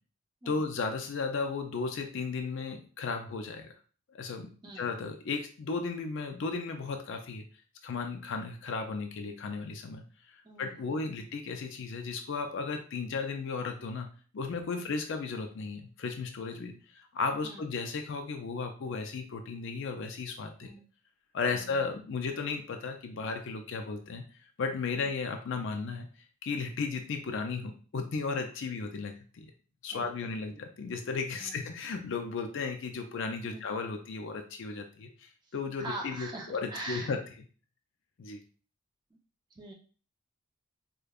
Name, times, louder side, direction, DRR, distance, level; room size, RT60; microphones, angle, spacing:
voice 1, 0.5-3.7 4.1-7.4 7.8-14.1 14.3-20.7 21.3-24.2 24.6-26.1 26.4-29.5 29.8-37.2 38.2-38.4, left 4 dB, 55° left, 5 dB, 0.4 m, -35 dB
voice 2, 4.6-4.9 10.4-11.2 14.8-15.0 17.4-17.7 20.6-20.8 21.5-22.1 25.0-25.1 29.9-30.6 31.4-31.7 33.5-33.7 35.4-37.1 39.5-39.7, right 2 dB, 20° right, 0 dB, 0.6 m, -44 dB
4.9 x 2.2 x 2.3 m, 0.39 s
head